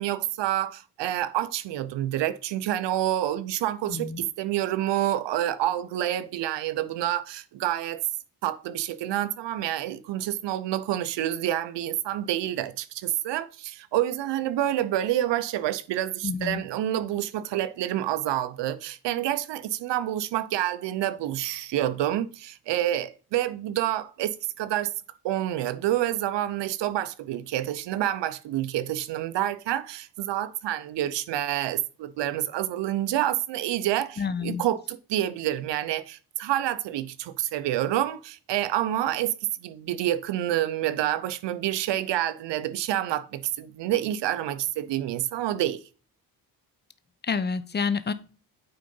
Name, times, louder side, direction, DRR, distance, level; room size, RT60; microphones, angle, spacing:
voice 1, 0.0-8.0 8.4-24.9 25.2-39.3 39.6-45.8, right 13 dB, 85° right, 0.7 m, -28 dB
voice 2, 3.9-4.2 16.2-16.6 34.2-34.6 47.2-48.1, left 5 dB, 25° left, 0.8 m, -28 dB
8.9 x 3.8 x 5.4 m
cardioid pair, 90°, 41 cm